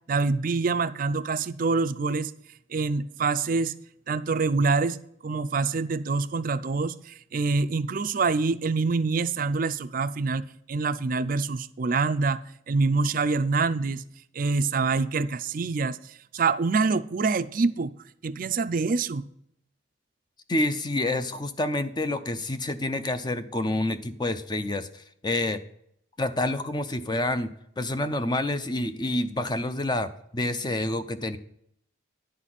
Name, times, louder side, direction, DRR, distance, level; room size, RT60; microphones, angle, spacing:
voice 1, 0.1-2.3 2.7-3.7 4.1-14.0 14.3-16.0 16.3-17.9 18.2-19.3, right 4 dB, 45° right, 12 dB, 0.4 m, -26 dB
voice 2, 20.5-25.6 26.2-31.4, left 2 dB, 20° left, 11 dB, 0.5 m, -28 dB
10.5 x 4.1 x 7.5 m, 0.71 s
head